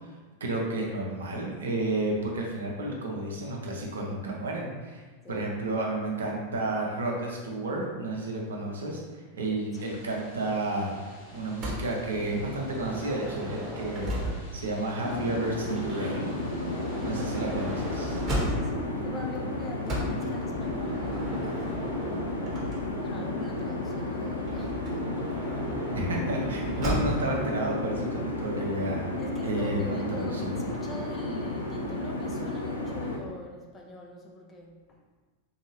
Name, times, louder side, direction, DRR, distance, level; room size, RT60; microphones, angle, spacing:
voice 1, 0.4-5.0 5.3-9.0 9.3-16.4 17.0-18.2 25.9-29.0 29.4-30.5, right 2 dB, 65° right, -1 dB, 0.6 m, -31 dB
sound 1, 9.7-18.5, left 1 dB, 50° left, 0.9 m, -51 dB
Motor vehicle (road) / Sliding door, 11.6-14.7 15.7-18.9 19.9-23.2 24.4-27.4, equal, 25° right, 1.0 m, -35 dB
sound 2, 15.0-33.2, left 2 dB, 75° left, 0.5 m, -33 dB
voice 2, 18.4-21.7 22.5-24.9 29.2-35.0, left 1 dB, 20° left, -1 dB, 0.6 m, -43 dB
3.9 x 2.7 x 2.9 m, 1.4 s
figure-of-eight pair, 90°, 0 cm